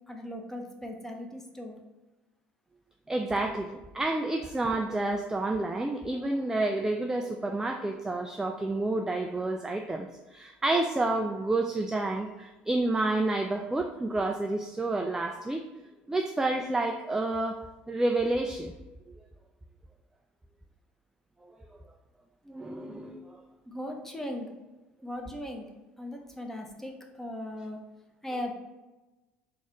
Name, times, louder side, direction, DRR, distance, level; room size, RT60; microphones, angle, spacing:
voice 1, 0.1-1.8 23.7-24.5 25.0-25.6 26.0-27.8 28.2-28.5, left 1 dB, 5° left, 2 dB, 0.8 m, -38 dB
voice 2, 3.1-15.6 16.1-18.7 22.5-23.4, right 2 dB, 10° right, 4 dB, 0.3 m, -29 dB
4.0 x 2.5 x 3.0 m, 1.1 s
hypercardioid pair, 65°, 6 cm